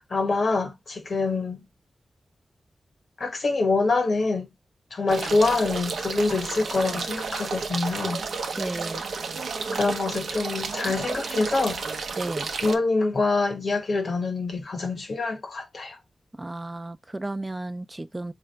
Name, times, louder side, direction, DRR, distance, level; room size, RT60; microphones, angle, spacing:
voice 1, 0.0-1.6 3.2-4.5 4.9-8.2 9.7-11.8 12.6-16.0, left 3 dB, 65° left, 1.1 m, -25 dB
sound 1, 5.1-12.8, right 4 dB, 80° right, 0.6 m, -31 dB
voice 2, 8.6-9.1 9.7-10.0 12.1-12.5 16.4-18.3, right 2 dB, 20° right, 0.3 m, -34 dB
3.6 x 2.5 x 3.2 m
cardioid pair, 55°, 0 cm